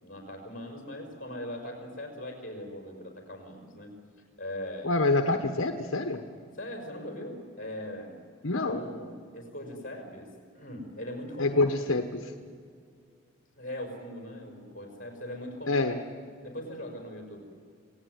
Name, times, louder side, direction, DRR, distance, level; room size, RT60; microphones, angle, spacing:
voice 1, 0.0-3.9 4.4-4.9 6.6-8.2 8.6-11.6 13.5-15.9 16.4-17.4, left 1 dB, 40° left, 2 dB, 5.4 m, -40 dB
voice 2, 4.8-6.2 8.4-8.8 11.4-12.3 15.7-16.0, left 2 dB, 75° left, 6 dB, 1.2 m, -26 dB
27.5 x 17.0 x 9.5 m, 2.2 s
head